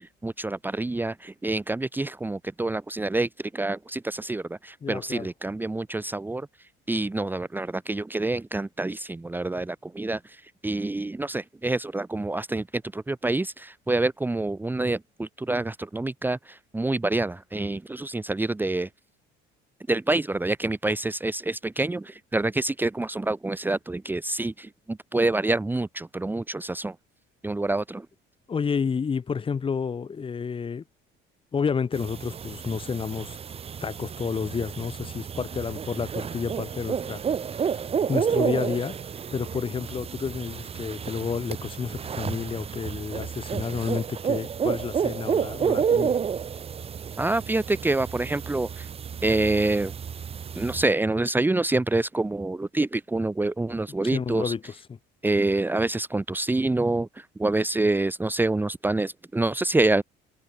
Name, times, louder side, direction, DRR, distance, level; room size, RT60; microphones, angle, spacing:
voice 1, 0.0-6.5 6.9-10.2 10.6-18.9 19.9-26.9 27.4-28.0 47.2-48.9 49.2-49.9 50.5-54.5 55.2-60.0, right 2 dB, 10° right, 1.5 m, -27 dB
voice 2, 4.8-5.3 28.5-30.8 31.5-33.4 33.8-37.2 37.6-37.8 38.1-39.0 39.3-46.2 53.6-53.7 54.0-54.8, left 6 dB, 25° left, 2.8 m, -30 dB
sound 1, 31.9-50.8, right 7 dB, 30° right, 1.4 m, -30 dB
cardioid pair, 135°, 20 cm